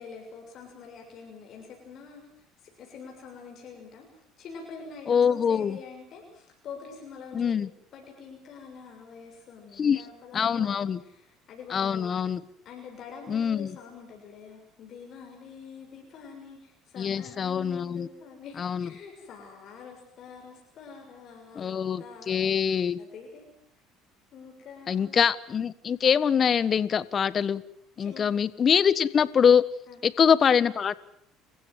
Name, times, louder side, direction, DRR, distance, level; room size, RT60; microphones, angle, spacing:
voice 1, 0.0-2.3 2.6-4.1 4.4-7.6 7.9-12.2 12.6-22.4 22.9-23.4 24.3-25.2 28.0-28.3 29.9-30.0, left 5 dB, 50° left, 2 dB, 6.6 m, -46 dB
voice 2, 5.1-5.8 7.3-7.7 9.8-10.0 10.3-11.0 11.7-12.4 13.3-13.7 17.0-18.1 18.6-18.9 21.6-23.0 24.9-27.6 28.0-29.6 30.0-30.9, left 7 dB, 35° left, 17 dB, 1.3 m, -24 dB
28.5 x 15.5 x 9.4 m, 0.71 s
supercardioid pair, 105°, 0 cm